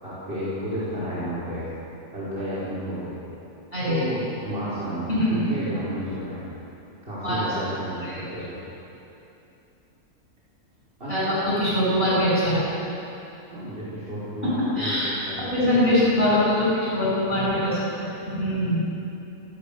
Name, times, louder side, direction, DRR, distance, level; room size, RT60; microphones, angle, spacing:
voice 1, 0.0-1.7 2.1-3.2 3.9-6.4 7.0-8.6 11.0-11.4 13.5-16.0, equal, 40° right, -10 dB, 5.4 m, -32 dB
voice 2, 3.7-4.0 5.1-5.4 7.2-7.5 8.0-8.2 11.1-12.6 14.8-15.2 15.4-18.9, left 1 dB, 40° left, -8 dB, 7.5 m, -23 dB
26.5 x 16.5 x 7.1 m, 2.8 s
omnidirectional pair, 1.6 m